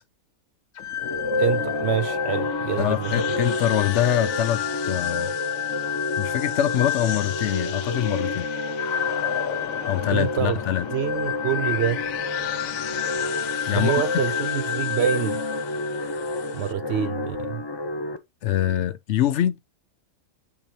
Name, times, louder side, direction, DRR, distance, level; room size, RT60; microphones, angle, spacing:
sound 1, 0.8-16.7, left 10 dB, 85° left, 1.1 m, -30 dB
sound 2, 1.0-18.2, left 2 dB, 25° left, 0.5 m, -30 dB
voice 1, 1.4-3.4 10.1-10.6 10.9-12.0 13.7-15.4 16.5-17.6, right 9 dB, 65° right, 0.7 m, -26 dB
voice 2, 2.8-5.3 6.2-8.5 9.9-10.9 13.7-14.2 18.4-19.6, left 11 dB, 70° left, 0.8 m, -24 dB
7.2 x 4.7 x 2.8 m
omnidirectional pair, 1.4 m